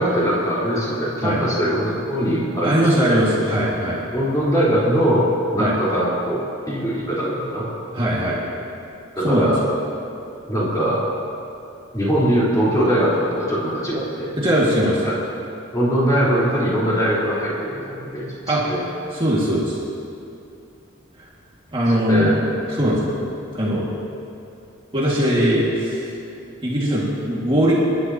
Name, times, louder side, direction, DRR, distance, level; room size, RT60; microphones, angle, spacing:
voice 1, 0.0-3.2 4.1-5.3 5.5-7.7 9.2-9.6 10.5-11.0 11.9-14.3 15.0-15.1 15.7-18.3 18.7-18.8 22.1-22.3 22.8-23.0, equal, 15° left, -9 dB, 3.9 m, -21 dB
voice 2, 2.6-4.0 5.6-5.7 7.9-8.4 9.2-9.5 14.4-15.1 18.5-18.7 19.1-19.8 21.2-21.3 21.7-23.2 23.5-23.9 24.9-26.1 26.6-27.8, equal, 25° right, -6 dB, 2.0 m, -20 dB
29.0 x 11.5 x 2.9 m, 2.8 s
head